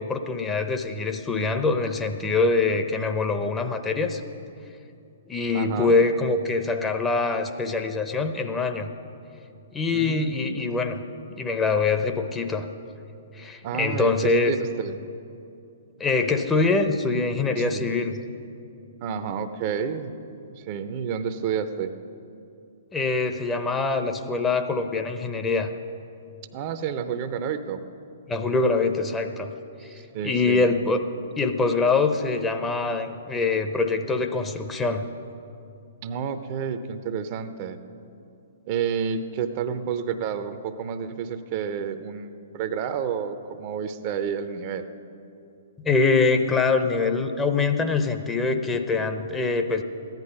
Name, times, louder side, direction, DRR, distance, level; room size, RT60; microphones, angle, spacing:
voice 1, 0.0-4.2 5.3-8.9 9.7-11.0 11.4-12.7 13.3-14.6 16.0-18.2 22.9-25.7 28.3-29.5 30.2-31.0 31.4-35.1 45.8-49.8, left 3 dB, 15° left, 6 dB, 0.7 m, -24 dB
voice 2, 5.5-5.9 9.9-10.6 13.6-15.0 17.6-17.9 19.0-20.1 20.5-21.9 26.5-27.8 29.8-30.6 36.0-37.8 38.7-44.9, right 7 dB, 40° right, 10 dB, 0.7 m, -30 dB
14.5 x 10.5 x 5.4 m, 2.7 s
figure-of-eight pair, 115°, 0 cm